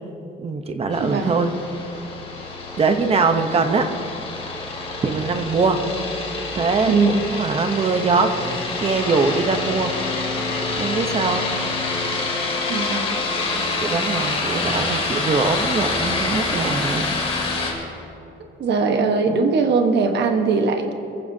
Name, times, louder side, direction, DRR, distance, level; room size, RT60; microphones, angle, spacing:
voice 1, 0.4-1.5 2.8-3.9 5.0-5.8 6.5-9.9 10.8-11.5 13.8-17.2, right 4 dB, 30° right, 6 dB, 0.9 m, -22 dB
sound 1, 0.9-17.7, left 3 dB, 30° left, 2.6 m, -26 dB
voice 2, 1.0-1.4 6.9-7.2 12.7-13.1 18.6-20.9, right 4 dB, 55° right, 5 dB, 1.3 m, -20 dB
24.5 x 15.0 x 2.8 m, 2.8 s
cardioid pair, 175°, 21 cm